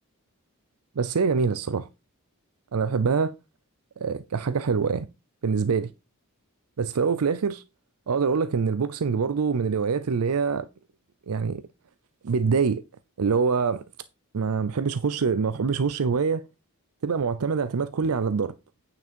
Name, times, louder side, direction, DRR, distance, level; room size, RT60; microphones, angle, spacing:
voice 1, 1.0-1.9 2.7-3.3 4.0-5.1 5.4-5.9 6.8-7.6 8.1-10.7 11.3-11.6 12.2-12.8 13.2-13.8 14.3-16.4 17.0-18.5, right 5 dB, 80° right, 0.5 m, -25 dB
9.2 x 6.0 x 4.4 m
head